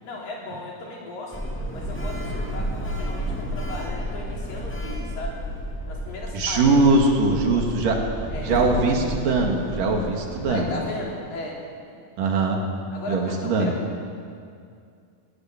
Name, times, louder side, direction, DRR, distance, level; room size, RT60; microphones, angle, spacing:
voice 1, 0.0-5.4 5.9-6.8 7.3-7.6 8.3-8.5 10.5-11.6 11.9-12.0 12.9-13.8, left 2 dB, 90° left, -2 dB, 5.4 m, -36 dB
Sliding door, 1.3-10.9, equal, 5° left, 1.7 m, -31 dB
voice 2, 6.3-8.0 8.4-10.8 12.2-12.6 13.1-13.7, right 3 dB, 75° right, 2 dB, 3.8 m, -21 dB
21.5 x 17.5 x 7.4 m, 2.3 s
omnidirectional pair, 3.8 m